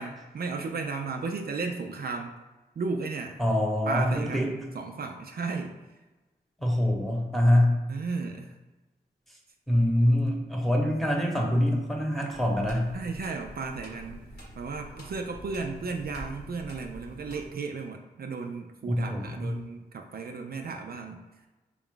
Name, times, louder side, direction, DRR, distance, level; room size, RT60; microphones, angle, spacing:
voice 1, 0.0-2.3 2.8-3.4 3.9-5.7 7.9-8.5 12.9-14.2 14.6-21.2, right 4 dB, 60° right, 3 dB, 0.4 m, -34 dB
voice 2, 3.4-4.5 6.6-7.8 9.7-12.9 18.8-19.5, left 1 dB, ahead, -1 dB, 1.0 m, -25 dB
sound 1, 12.3-17.5, equal, 70° left, 1.2 m, -46 dB
4.3 x 2.3 x 3.7 m, 1.1 s
cardioid pair, 45°, 17 cm